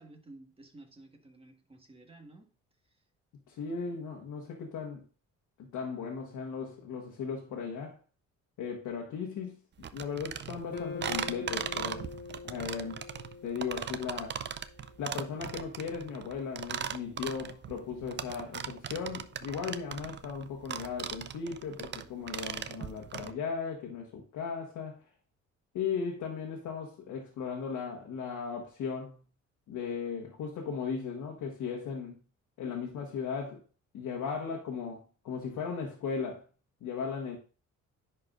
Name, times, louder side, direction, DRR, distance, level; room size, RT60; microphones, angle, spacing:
voice 1, 0.0-2.5, right 2 dB, 20° right, 1.5 m, -53 dB
voice 2, 3.5-5.0 5.6-8.0 8.6-9.6 9.9-12.1 12.4-13.0 13.4-14.4 15.0-25.0 25.7-29.2 29.7-32.2 32.6-33.6 33.9-36.5 36.8-37.4, left 6 dB, 85° left, 1.4 m, -37 dB
sound 1, 9.8-23.3, right 8 dB, 35° right, 0.5 m, -38 dB
sound 2, 10.7-15.0, left 5 dB, 30° left, 1.3 m, -44 dB
10.0 x 4.6 x 2.5 m
cardioid pair, 90°, 30 cm